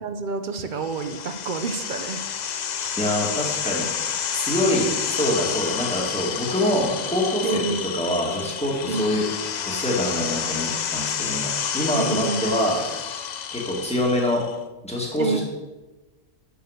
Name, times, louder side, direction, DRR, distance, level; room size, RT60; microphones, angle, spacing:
voice 1, 0.0-2.2 7.4-7.9 8.9-9.3 11.9-12.5 15.2-15.4, right 4 dB, 50° right, 8 dB, 0.6 m, -28 dB
sound 1, 0.8-14.5, left 8 dB, 90° left, 0.3 m, -29 dB
voice 2, 3.0-3.9 4.3-9.3 9.7-12.8 13.5-14.4 14.8-15.4, equal, 5° left, -3 dB, 2.0 m, -25 dB
6.8 x 6.7 x 6.5 m, 1.1 s
omnidirectional pair, 1.4 m